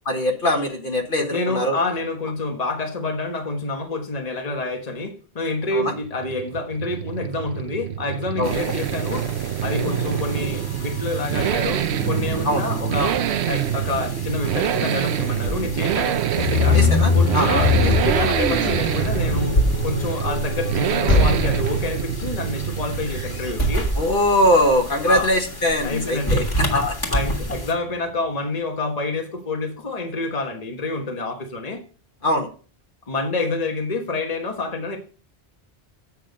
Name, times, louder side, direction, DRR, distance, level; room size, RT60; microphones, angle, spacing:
voice 1, 0.0-1.8 5.7-5.9 8.4-8.5 12.4-12.6 16.7-17.5 24.0-26.4 32.2-32.5, left 1 dB, 55° left, 3 dB, 1.5 m, -21 dB
voice 2, 1.3-9.3 9.6-13.2 13.5-16.8 17.1-19.6 19.8-23.9 25.1-25.3 25.8-31.8 33.1-35.0, left 2 dB, 40° left, 3 dB, 1.4 m, -27 dB
sound 1, 5.8-23.8, right 10 dB, 80° right, 0.9 m, -26 dB
sound 2, 8.4-27.7, right 1 dB, 20° left, 1.8 m, -31 dB
sound 3, 16.3-27.5, left 3 dB, 75° left, 2.6 m, -23 dB
8.3 x 6.1 x 5.2 m, 0.39 s
omnidirectional pair, 1.1 m